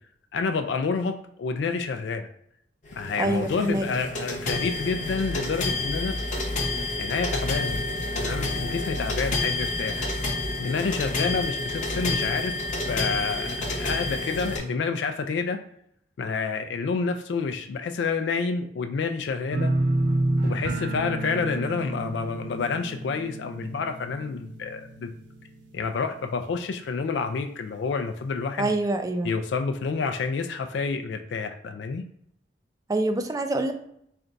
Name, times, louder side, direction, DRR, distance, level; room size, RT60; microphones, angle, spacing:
voice 1, 0.3-2.3 3.0-6.2 7.0-7.8 8.2-10.1 10.6-12.5 12.9-15.6 16.2-19.7 20.4-25.1 25.7-28.8 29.2-32.0, left 4 dB, 85° left, 7 dB, 0.3 m, -29 dB
sound 1, 2.8-14.6, left 2 dB, 45° left, 0.8 m, -29 dB
voice 2, 3.2-3.8 28.6-29.3 32.9-33.7, right 2 dB, 20° right, 7 dB, 0.4 m, -25 dB
sound 2, 19.5-26.4 26.7-27.2 27.6-27.7, right 2 dB, 90° right, 0.5 m, -29 dB
3.3 x 2.5 x 3.9 m, 0.72 s
head